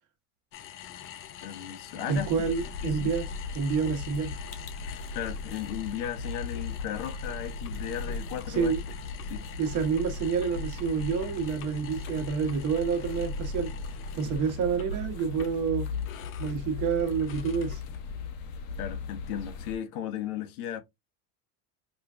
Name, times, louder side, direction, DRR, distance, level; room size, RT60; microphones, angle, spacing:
sound 1, 0.5-18.2, left 9 dB, 30° left, 0.4 m, -46 dB
voice 1, 1.4-2.3 2.8-3.1 5.1-8.7 9.2-9.5 18.8-20.8, left 9 dB, 75° left, 1.1 m, -35 dB
sound 2, 2.1-19.8, left 3 dB, 50° left, 0.9 m, -37 dB
voice 2, 2.1-3.2 3.5-4.3 8.5-8.8 9.6-13.7 14.1-15.9 16.4-17.8, right 6 dB, 45° right, 1.2 m, -28 dB
4.9 x 2.3 x 2.4 m
supercardioid pair, 130°, 44 cm